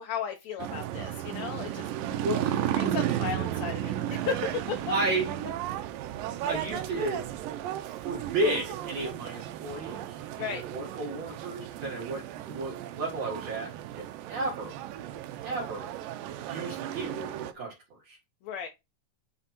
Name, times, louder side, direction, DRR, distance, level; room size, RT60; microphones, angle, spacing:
voice 1, 0.0-1.8 2.7-4.9 10.4-10.6 18.4-18.7, left 6 dB, 80° left, 1.6 m, -35 dB
sound 1, 0.6-17.5, right 11 dB, 85° right, 2.4 m, -34 dB
voice 2, 2.2-2.6 4.9-5.3 6.4-7.2 8.0-10.2 10.7-14.7 15.4-15.9 16.5-17.7 18.1-18.2, right 2 dB, 55° right, 3.0 m, -33 dB
8.9 x 3.4 x 4.3 m
omnidirectional pair, 3.9 m